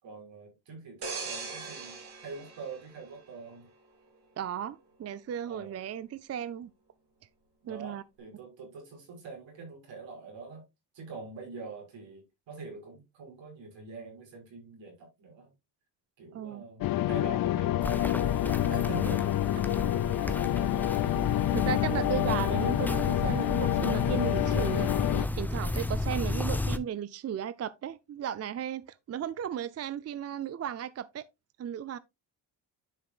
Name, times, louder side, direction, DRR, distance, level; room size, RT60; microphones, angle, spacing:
voice 1, 0.0-3.7 5.5-5.8 7.6-10.6 10.9-15.5 16.2-19.2, right 4 dB, 70° right, 5.5 m, -44 dB
sound 1, 1.0-3.7 4.2-4.4, right 4 dB, 55° right, 2.9 m, -40 dB
voice 2, 4.4-6.7 7.7-8.0 16.3-16.6 21.5-24.9 25.2-31.2 31.6-32.0, right 9 dB, 35° right, 0.5 m, -35 dB
sound 2, 16.8-25.3, left 14 dB, 50° left, 0.4 m, -28 dB
Walk footsteps, 17.8-26.8, left 1 dB, 5° left, 0.7 m, -33 dB
11.0 x 5.9 x 2.4 m
supercardioid pair, 70°, 45 cm